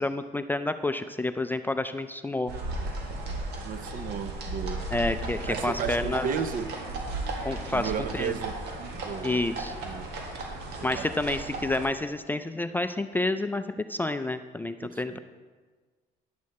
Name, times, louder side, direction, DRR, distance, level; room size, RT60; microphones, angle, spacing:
voice 1, 0.0-2.5 4.9-6.3 7.4-8.4 9.2-9.7 10.8-15.2, left 2 dB, 10° left, 9 dB, 0.3 m, -29 dB
sound 1, 2.5-11.9, right 2 dB, 85° right, 1.8 m, -35 dB
voice 2, 3.6-4.9 5.5-6.7 7.7-8.6 8.9-9.4 9.8-10.1 10.8-11.1 14.8-15.2, right 7 dB, 55° right, 11 dB, 0.7 m, -34 dB
10.5 x 8.4 x 4.2 m, 1.4 s
cardioid pair, 110°, 17 cm